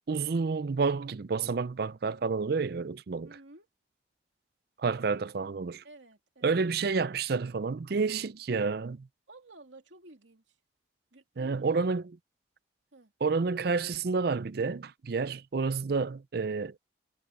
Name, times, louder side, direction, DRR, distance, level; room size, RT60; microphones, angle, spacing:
voice 1, 0.1-3.4 4.8-5.8 6.4-9.1 11.4-12.1 13.2-16.8, right 4 dB, 55° right, 0.5 m, -29 dB
voice 2, 3.2-3.7 5.8-6.6 9.3-10.6 11.1-11.8 12.9-13.1, right 2 dB, 75° right, 2.8 m, -53 dB
head